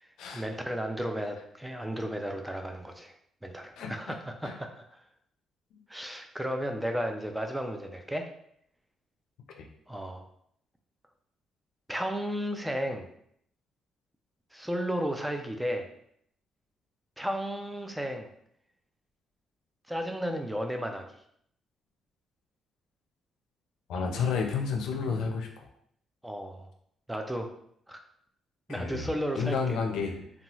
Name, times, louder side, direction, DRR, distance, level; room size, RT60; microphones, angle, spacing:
voice 1, 0.0-3.1 3.4-5.0 5.9-8.3 9.9-10.3 11.9-13.1 14.5-15.9 17.2-18.3 19.9-21.0 26.2-26.7 27.1-27.5 27.9-28.0 28.7-29.8, equal, 5° right, 4 dB, 0.4 m, -34 dB
voice 2, 23.9-25.7 28.7-29.1 29.4-30.2, left 5 dB, 80° left, 2 dB, 0.5 m, -31 dB
2.7 x 2.2 x 3.0 m, 0.68 s
cardioid pair, 90°, 0 cm